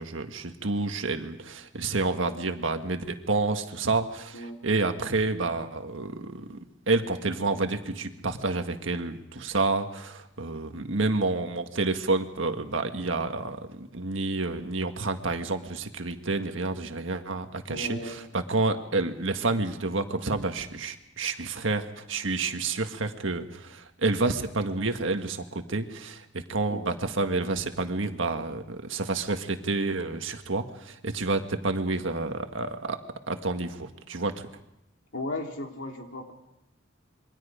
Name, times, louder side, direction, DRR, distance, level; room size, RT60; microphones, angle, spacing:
voice 1, 0.0-6.6 6.9-33.0 33.3-34.5, right 3 dB, 75° right, 6 dB, 1.7 m, -29 dB
voice 2, 17.7-18.2 26.7-26.9 35.1-36.3, left 2 dB, 70° left, 2 dB, 3.4 m, -35 dB
27.5 x 23.0 x 5.1 m, 0.85 s
head